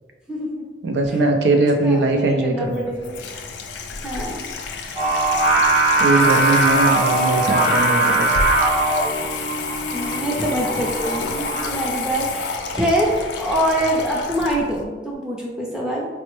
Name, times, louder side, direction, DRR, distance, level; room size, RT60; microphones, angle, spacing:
voice 1, 0.3-0.6 1.8-3.2 4.0-4.5 6.6-6.7 9.9-12.5 12.7-16.1, equal, 5° right, -4 dB, 0.4 m, -24 dB
voice 2, 0.8-2.8 6.0-8.4, right 2 dB, 80° right, 4 dB, 0.4 m, -20 dB
Water tap faucet / Sink (filling or washing), 2.6-14.8, left 4 dB, 80° left, 0.4 m, -30 dB
Singing, 5.0-11.7, right 2 dB, 25° right, 1.0 m, -20 dB
4.2 x 2.0 x 3.1 m, 1.4 s
head